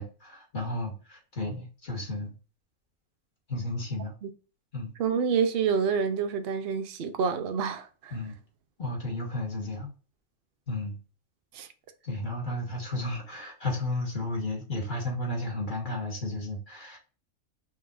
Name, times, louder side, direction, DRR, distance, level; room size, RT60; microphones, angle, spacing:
voice 1, 0.0-2.3 3.5-4.1 4.7-4.9 8.1-8.4 8.8-9.9 10.7-11.0 12.0-17.0, left 2 dB, 35° left, 1.5 m, -33 dB
voice 2, 5.0-8.2 11.5-11.7, right 6 dB, 60° right, 0.6 m, -28 dB
5.6 x 2.8 x 2.5 m
omnidirectional pair, 1.6 m